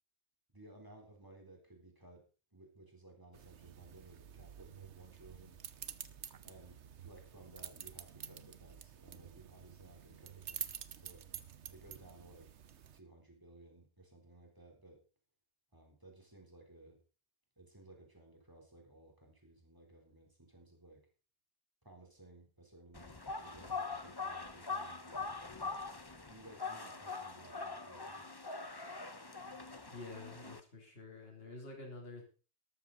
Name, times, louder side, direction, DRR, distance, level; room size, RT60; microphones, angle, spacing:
voice 1, 0.5-2.2 2.5-5.6 6.4-11.2 11.7-12.5 12.9-15.0 15.7-17.0 17.6-21.1 21.8-25.8 26.3-28.3, right 2 dB, 20° right, 1 dB, 4.0 m, -58 dB
sound 1, 3.3-13.0, right 8 dB, 80° right, 1.2 m, -49 dB
sound 2, 22.9-30.6, left 4 dB, 20° left, 1.0 m, -43 dB
voice 2, 29.9-32.3, left 3 dB, 60° left, 0 dB, 3.6 m, -49 dB
13.5 x 12.5 x 4.1 m, 0.35 s
omnidirectional pair, 1.1 m